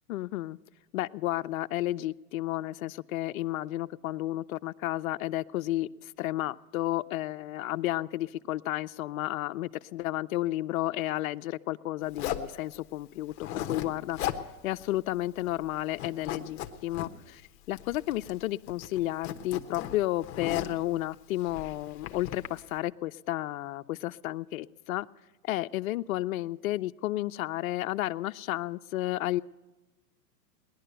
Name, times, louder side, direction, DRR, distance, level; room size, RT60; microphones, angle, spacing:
voice 1, 0.1-0.6 0.9-14.2 14.6-17.4 17.7-25.1 25.4-29.4, left 16 dB, 60° left, 13 dB, 0.5 m, -32 dB
Zipper (clothing), 12.1-12.5 13.3-13.9 14.1-14.4 14.8-14.9 15.2-15.7 15.9-17.1 17.8-18.4 18.7-20.8 21.4-22.5, left 11 dB, 45° left, 1.0 m, -36 dB
19.0 x 11.0 x 6.7 m, 1.2 s
hypercardioid pair, 150°, 48 cm